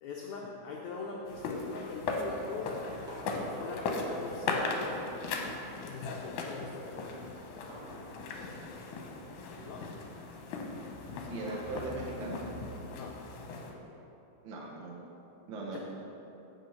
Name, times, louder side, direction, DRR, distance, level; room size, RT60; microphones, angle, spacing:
voice 1, 0.0-2.9 3.3-5.0 5.8-7.0 9.6-9.8 13.0-13.1 15.7-15.8, left 4 dB, 90° left, -2 dB, 1.6 m, -42 dB
sound 1, 1.3-13.7, left 3 dB, 70° left, 2.0 m, -38 dB
sound 2, 2.5-3.5 4.4-6.0 6.3-13.6, right 1 dB, 45° right, 1.5 m, -54 dB
voice 2, 11.3-12.4 14.4-15.1 15.5-15.8, right 2 dB, 65° right, -3 dB, 1.2 m, -39 dB
8.2 x 6.8 x 5.7 m, 2.9 s
omnidirectional pair, 4.3 m